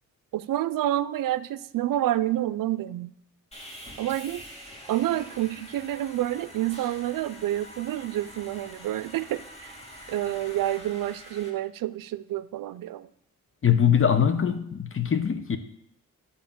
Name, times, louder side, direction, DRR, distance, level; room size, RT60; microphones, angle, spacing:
voice 1, 0.3-3.1 4.0-4.4 4.9-9.8 10.1-13.1, right 13 dB, 85° right, 15 dB, 0.5 m, -28 dB
Sawing, 3.5-11.5, equal, 20° left, 2.5 m, -45 dB
voice 2, 13.6-15.6, left 8 dB, 40° left, 9 dB, 0.9 m, -22 dB
10.5 x 4.3 x 7.1 m, 0.75 s
cardioid pair, 85°, 32 cm